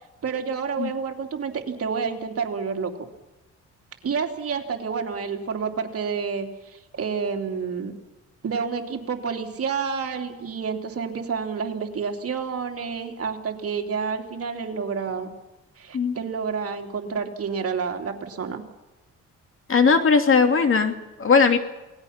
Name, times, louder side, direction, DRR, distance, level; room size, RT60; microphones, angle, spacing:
voice 1, 0.2-2.9 4.0-7.9 8.4-15.3 15.8-18.6, right 5 dB, 50° right, 3 dB, 3.0 m, -29 dB
voice 2, 19.7-21.6, left 5 dB, 45° left, 6 dB, 2.6 m, -19 dB
28.0 x 19.5 x 5.9 m, 1.1 s
cardioid pair, 90°, 30 cm